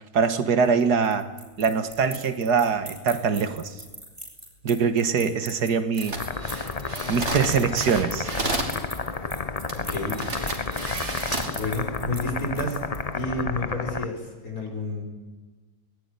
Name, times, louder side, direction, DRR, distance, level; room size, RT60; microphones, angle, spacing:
voice 1, 0.1-1.3 1.6-3.7 4.6-6.2 7.1-8.3, right 6 dB, 75° right, 10 dB, 2.0 m, -23 dB
sound 1, 0.6-13.2, right 1 dB, 15° right, 4.5 m, -42 dB
sound 2, 6.0-8.8 9.7-9.8 10.1-11.6 12.1-12.4, right 2 dB, 45° right, 3.4 m, -31 dB
sound 3, 6.2-14.0, left 4 dB, 30° left, 0.8 m, -31 dB
voice 2, 9.7-10.2 11.5-12.8 13.1-15.0, left 2 dB, 60° left, 3 dB, 5.6 m, -30 dB
25.5 x 19.0 x 9.8 m, 1.3 s
omnidirectional pair, 1.7 m